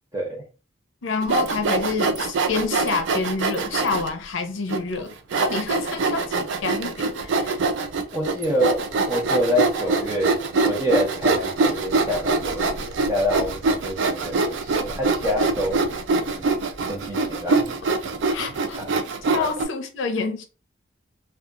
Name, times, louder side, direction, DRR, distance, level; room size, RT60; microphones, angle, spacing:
voice 1, 0.1-0.4 8.1-15.8 16.3-16.5 16.9-17.7 18.7-19.0 19.4-19.5, equal, 15° right, 0.7 m, -27 dB
voice 2, 1.0-7.6 18.3-18.8 19.3-20.4, left 4 dB, 75° left, 0.5 m, -28 dB
Sawing, 1.2-4.1 4.7-4.8 5.3-19.6, right 3 dB, 70° right, 0.4 m, -24 dB
2.7 x 2.3 x 2.3 m
head